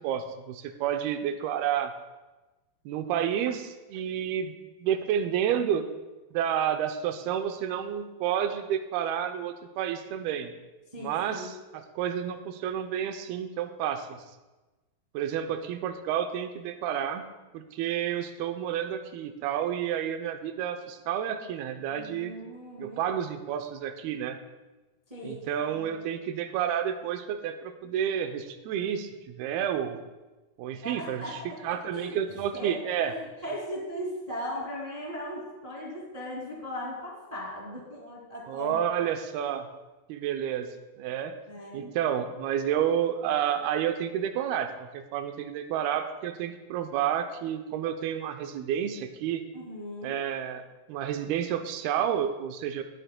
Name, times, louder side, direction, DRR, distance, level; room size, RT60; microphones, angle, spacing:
voice 1, 0.0-1.9 2.9-4.5 4.8-5.9 6.3-10.5 11.0-14.2 15.1-17.3 17.5-22.3 22.8-24.4 25.2-30.0 30.6-33.1 38.5-39.7 40.1-40.7 41.0-41.3 41.7-49.5 50.0-52.8, right 9 dB, 85° right, 7 dB, 2.6 m, -30 dB
voice 2, 10.9-11.5 21.9-23.0 25.1-25.4 25.7-26.0 30.8-32.2 32.5-32.8 33.0-38.8 41.5-41.9 49.5-50.2, equal, 25° right, -4 dB, 0.8 m, -38 dB
19.0 x 7.8 x 2.2 m, 1.1 s
omnidirectional pair, 4.3 m